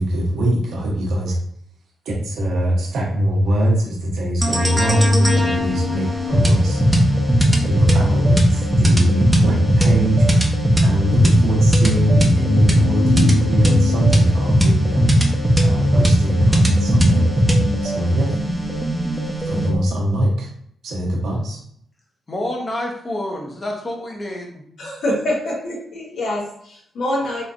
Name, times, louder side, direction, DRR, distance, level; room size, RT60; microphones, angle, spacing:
voice 1, 0.0-1.4 2.0-7.0 7.6-15.3 15.6-17.3 17.8-18.4 19.4-20.5 20.8-21.6, equal, 85° right, -1 dB, 0.9 m, -21 dB
sound 1, 4.4-19.8, equal, 5° right, 0.7 m, -18 dB
voice 2, 22.3-24.6, left 1 dB, 30° left, 0 dB, 1.0 m, -28 dB
voice 3, 24.8-27.4, left 1 dB, 75° left, -3 dB, 1.3 m, -25 dB
3.3 x 3.3 x 2.5 m, 0.68 s
cardioid pair, 80°, 0 cm